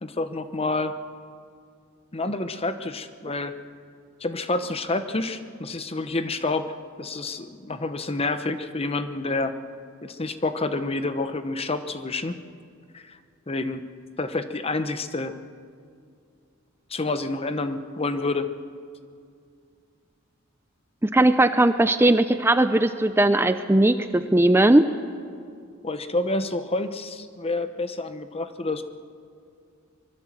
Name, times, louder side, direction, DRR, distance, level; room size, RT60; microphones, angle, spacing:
voice 1, 0.0-0.9 2.1-3.6 4.2-9.5 10.0-12.4 12.9-13.2 13.5-13.8 14.2-15.3 16.9-18.5 25.8-28.8, left 2 dB, 30° left, 10 dB, 1.0 m, -28 dB
voice 2, 21.0-24.9, right 1 dB, 10° right, 10 dB, 0.5 m, -19 dB
24.0 x 21.0 x 7.6 m, 2.3 s
head